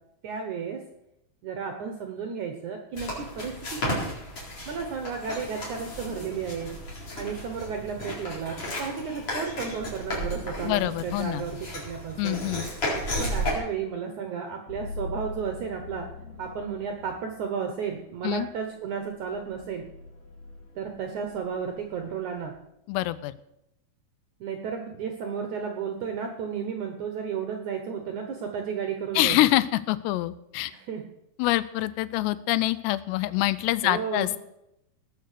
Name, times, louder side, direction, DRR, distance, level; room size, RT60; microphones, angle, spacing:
voice 1, 0.2-0.8 1.4-4.0 4.7-6.7 7.2-12.5 13.2-16.1 16.4-19.9 20.8-22.5 24.4-29.4 30.7-31.0 33.8-34.3, right 6 dB, 70° right, 5 dB, 1.8 m, -33 dB
sound 1, 2.9-13.6, equal, 35° left, 4.6 m, -34 dB
voice 2, 10.6-11.5 12.2-12.7 18.2-18.5 22.9-23.3 29.1-30.7 31.4-34.4, left 16 dB, 85° left, 16 dB, 2.8 m, -25 dB
sound 2, 14.7-22.5, left 3 dB, 70° left, 3.9 m, -44 dB
19.0 x 6.7 x 6.6 m, 0.83 s
omnidirectional pair, 4.9 m